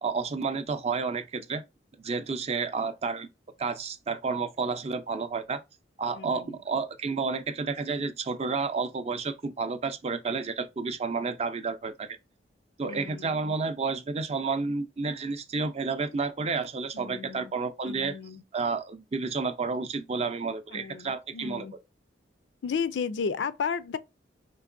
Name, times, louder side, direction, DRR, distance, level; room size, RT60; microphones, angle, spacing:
voice 1, 0.0-1.6 2.0-3.3 3.6-5.6 6.0-12.2 12.8-18.2 18.5-21.7, right 4 dB, 35° right, 0.5 m, -31 dB
voice 2, 6.1-6.6 12.9-13.5 16.9-17.5 17.9-18.4 20.7-21.7 22.6-24.0, left 6 dB, 85° left, 0.4 m, -33 dB
4.5 x 2.9 x 2.5 m
head